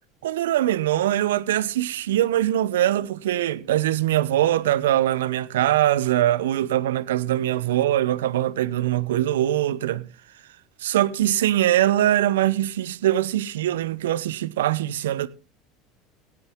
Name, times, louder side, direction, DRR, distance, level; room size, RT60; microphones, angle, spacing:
voice 1, 0.2-10.0 10.8-15.3, right 13 dB, 75° right, 0.7 m, -22 dB
17.5 x 8.5 x 3.7 m
hypercardioid pair, 75°, 0 cm